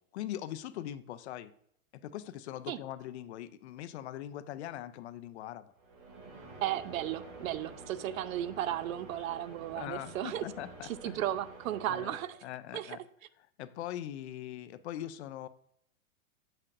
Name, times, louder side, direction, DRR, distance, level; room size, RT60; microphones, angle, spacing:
voice 1, 0.1-1.5 1.9-5.7 9.7-11.2 11.9-12.2 12.4-13.0 13.4-15.5, left 12 dB, 50° left, 0.5 m, -41 dB
sound 1, 5.8-12.6, right 3 dB, 45° right, 2.3 m, -49 dB
voice 2, 6.6-10.4 10.8-12.4 12.7-13.0, right 12 dB, 70° right, 0.6 m, -35 dB
7.7 x 5.9 x 2.5 m
supercardioid pair, 150°, 43 cm